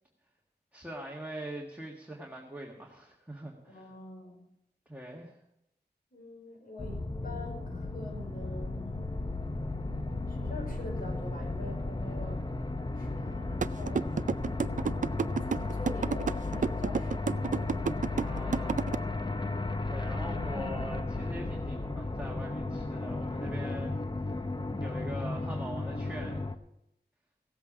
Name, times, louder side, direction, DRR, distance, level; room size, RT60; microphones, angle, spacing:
voice 1, 0.7-3.9 4.9-5.4 18.1-18.8 19.9-24.4 24.8-26.4, right 1 dB, 10° right, -1 dB, 1.7 m, -42 dB
voice 2, 3.7-4.4 6.1-9.2 9.7-12.5 12.9-14.4 15.4-17.4, left 1 dB, 60° left, -1 dB, 5.2 m, -45 dB
sound 1, 6.8-26.5, left 2 dB, 25° left, 0.8 m, -34 dB
sound 2, 13.6-19.0, right 6 dB, 50° right, 0.4 m, -29 dB
16.5 x 8.0 x 5.0 m, 0.82 s
wide cardioid pair, 70°, 17 cm